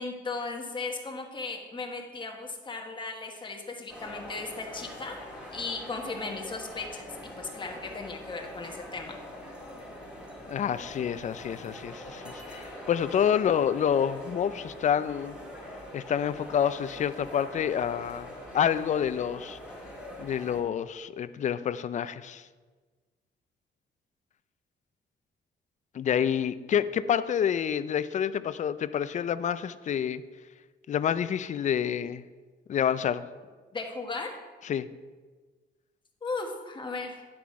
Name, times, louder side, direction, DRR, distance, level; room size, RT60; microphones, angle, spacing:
voice 1, 0.0-5.2 5.5-7.1 7.4-9.2 33.7-34.3 36.2-37.2, left 3 dB, 25° left, 2 dB, 1.2 m, -36 dB
sound 1, 3.9-20.6, left 1 dB, 5° right, 1.7 m, -43 dB
voice 2, 10.5-15.4 15.9-18.3 18.5-19.6 20.2-22.4 25.9-30.2 30.9-32.2 32.7-33.2 34.6-34.9, left 8 dB, 40° left, 14 dB, 0.4 m, -28 dB
10.0 x 5.9 x 4.7 m, 1.4 s
cardioid pair, 145°, 19 cm